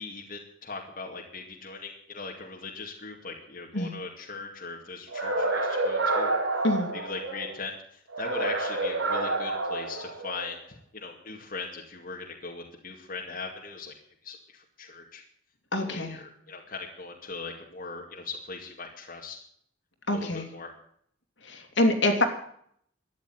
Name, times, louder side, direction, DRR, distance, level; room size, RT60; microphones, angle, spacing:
voice 1, 0.0-6.3 6.9-13.9 14.2-15.2 15.8-19.4 20.1-20.7, left 4 dB, 45° left, 0 dB, 2.3 m, -40 dB
sound 1, 5.1-7.5 8.1-10.5, right 2 dB, 90° right, 3.5 m, -29 dB
voice 2, 15.7-16.2 20.1-20.5 21.4-22.2, left 1 dB, 65° left, 5 dB, 2.7 m, -25 dB
13.5 x 10.0 x 9.6 m, 0.65 s
head